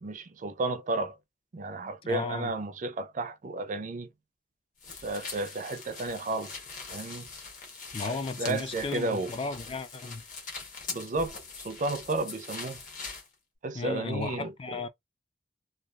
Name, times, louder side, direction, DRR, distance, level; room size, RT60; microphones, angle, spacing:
voice 1, 0.0-1.2 1.5-4.1 5.0-6.5 6.9-7.3 8.0-9.3 10.9-11.3 11.6-12.8 13.6-14.8, right 2 dB, 45° right, 0.5 m, -32 dB
voice 2, 2.0-2.5 7.9-10.2 13.7-14.9, left 4 dB, 30° left, 0.4 m, -35 dB
sound 1, 4.8-13.3, left 4 dB, 45° left, 1.1 m, -42 dB
3.2 x 2.3 x 2.3 m
head